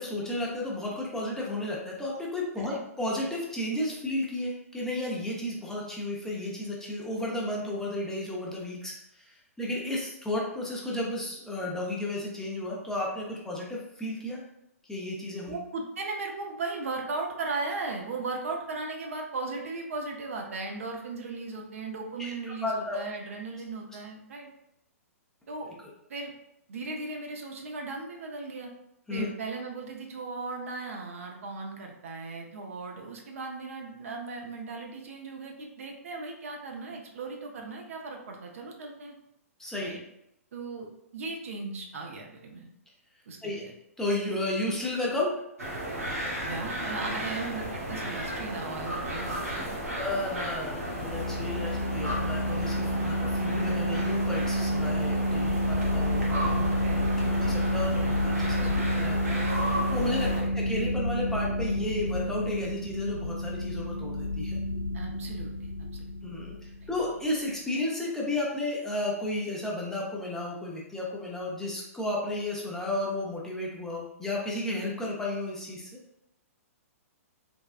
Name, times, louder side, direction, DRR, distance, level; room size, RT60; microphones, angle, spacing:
voice 1, 0.0-14.4 14.9-15.5 22.2-22.3 22.6-23.0 29.1-29.3 39.6-39.9 43.4-43.6 44.0-45.3 49.9-56.8 57.2-58.7 58.9-64.6 66.2-66.6 66.9-76.0, left 1 dB, 5° left, -4 dB, 0.6 m, -33 dB
voice 2, 15.5-24.5 25.5-25.7 26.1-26.3 26.7-28.7 29.1-39.1 39.8-40.0 40.5-42.7 43.3-43.7 46.4-49.4 53.1-53.2 56.8-57.4 58.6-58.9 60.3-60.5 64.9-66.1, right 3 dB, 65° right, 1 dB, 0.6 m, -37 dB
sound 1, 45.6-60.4, right 1 dB, 90° right, 1.0 m, -34 dB
sound 2, 50.8-67.0, equal, 65° left, 0.5 m, -29 dB
3.4 x 2.2 x 2.4 m, 0.81 s
figure-of-eight pair, 120°, 8 cm